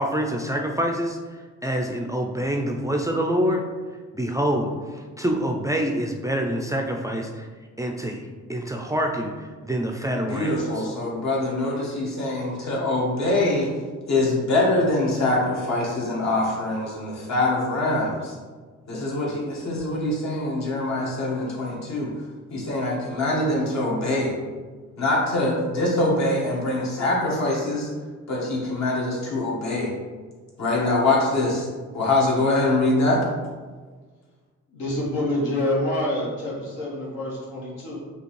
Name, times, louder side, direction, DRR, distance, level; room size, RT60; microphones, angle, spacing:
voice 1, 0.0-3.6 4.1-7.5 7.8-10.9, equal, 10° right, 2 dB, 0.4 m, -26 dB
voice 2, 10.2-13.7 14.1-18.3 18.9-22.1 22.5-24.3 25.0-27.9 28.3-29.9 30.6-31.7 31.9-33.2, left 2 dB, 65° left, -3 dB, 1.4 m, -24 dB
voice 3, 34.7-38.0, left 1 dB, 85° left, -5 dB, 1.5 m, -27 dB
5.1 x 2.8 x 3.1 m, 1.4 s
cardioid pair, 90°, 30 cm